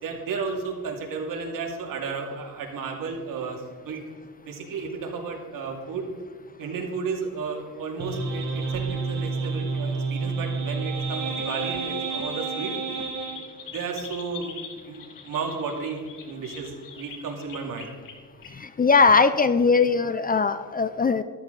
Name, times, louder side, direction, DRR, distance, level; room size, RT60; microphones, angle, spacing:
voice 1, 0.0-4.0 4.5-6.1 6.6-12.7 13.3-13.4 13.7-14.6 14.8-17.9, right 5 dB, 70° right, 1 dB, 2.7 m, -33 dB
sound 1, 8.0-13.4, right 4 dB, 50° right, 2.4 m, -29 dB
sound 2, 8.8-9.1 9.6-9.9 10.3-10.6 11.0-11.2 11.6-18.1 18.4-18.5, left 6 dB, 70° left, 2.5 m, -44 dB
voice 2, 18.5-21.2, left 4 dB, 25° left, 12 dB, 0.5 m, -20 dB
13.5 x 13.0 x 4.1 m, 1.5 s
cardioid pair, 125°, 34 cm